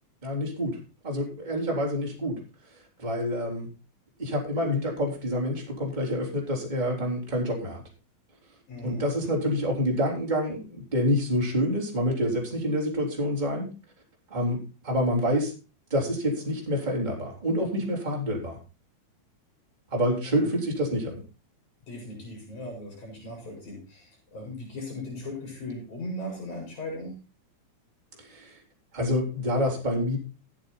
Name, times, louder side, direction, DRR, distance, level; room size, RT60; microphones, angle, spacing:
voice 1, 0.2-0.8 1.0-2.4 3.0-3.7 4.2-7.8 8.8-13.7 14.3-15.5 15.9-18.6 19.9-21.2 28.2-28.6 28.9-30.2, equal, 15° right, -1 dB, 3.5 m, -27 dB
voice 2, 8.7-9.1 20.3-20.5 21.9-27.2, left 1 dB, 70° left, -1 dB, 6.1 m, -38 dB
13.5 x 9.0 x 4.0 m, 0.32 s
omnidirectional pair, 3.5 m